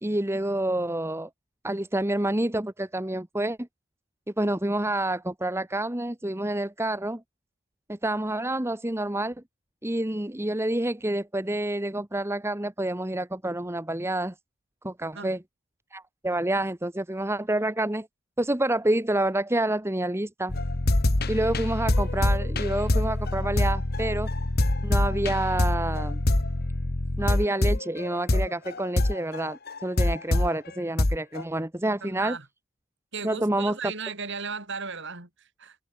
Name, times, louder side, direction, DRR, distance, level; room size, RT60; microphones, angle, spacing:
voice 1, 0.0-1.3 1.6-3.6 4.4-7.2 7.9-9.3 9.8-14.3 14.8-15.4 15.9-18.1 18.4-20.6 21.3-24.3 24.8-26.2 27.2-32.4 33.2-33.8, right 1 dB, 10° right, 1.1 m, -28 dB
sound 1, 20.5-30.5 31.0-31.4, left 1 dB, 45° left, 1.6 m, -25 dB
voice 2, 32.0-32.5 33.1-35.8, right 5 dB, 55° right, 7.4 m, -36 dB
head